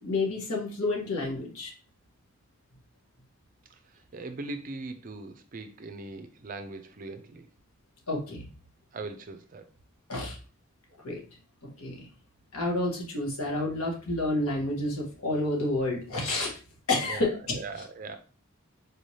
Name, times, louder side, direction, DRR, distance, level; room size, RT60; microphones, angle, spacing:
voice 1, 0.0-1.7 8.1-8.5 10.1-10.4 11.0-11.2 11.8-12.1 12.5-16.6 16.9-17.6, left 2 dB, 80° left, 0 dB, 1.3 m, -29 dB
voice 2, 4.1-7.5 8.9-9.6 17.1-18.2, right 3 dB, 35° right, 7 dB, 0.4 m, -40 dB
4.2 x 3.2 x 2.7 m, 0.36 s
head